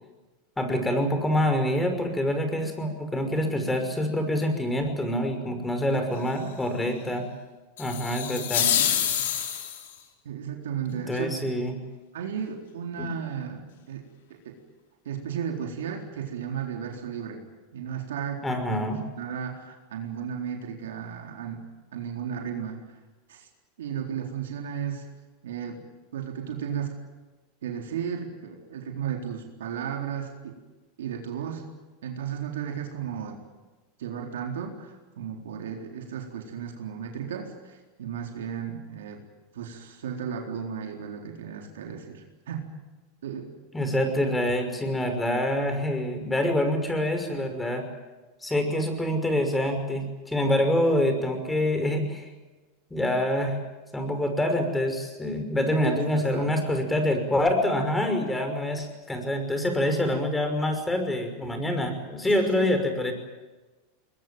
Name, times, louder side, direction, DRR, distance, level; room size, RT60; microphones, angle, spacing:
voice 1, 0.6-7.3 7.8-8.7 11.1-11.7 13.0-13.1 18.4-19.0 43.7-47.8 48.4-52.3 52.9-53.6 53.9-63.1, left 1 dB, 10° left, 6 dB, 5.8 m, -26 dB
sound 1, 7.8-10.0, left 10 dB, 80° left, 4.3 m, -26 dB
voice 2, 10.2-11.4 12.1-14.0 14.3-14.6 15.0-17.4 17.7-18.8 19.2-21.7 21.9-22.8 23.3-23.5 23.8-25.1 25.4-25.8 26.1-26.9 27.6-30.6 31.0-31.7 32.0-33.4 34.0-39.2 39.5-42.7 43.2-43.5 55.7-56.5 62.3-62.7, right 8 dB, 85° right, 1 dB, 4.0 m, -34 dB
23.0 x 21.5 x 9.2 m, 1.2 s
hypercardioid pair, 115°, 0 cm